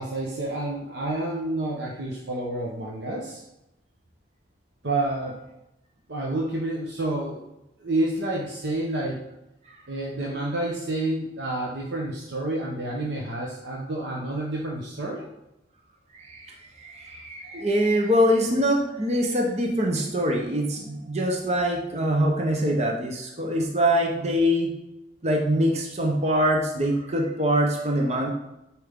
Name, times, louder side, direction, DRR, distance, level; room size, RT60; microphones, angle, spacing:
voice 1, 0.0-3.4 4.8-5.4 6.1-7.5 7.8-9.2 9.9-15.3, right 2 dB, 70° right, -2 dB, 1.0 m, -29 dB
voice 2, 16.1-24.7 25.2-28.3, equal, 35° right, 1 dB, 0.8 m, -24 dB
9.4 x 4.6 x 3.6 m, 0.89 s
head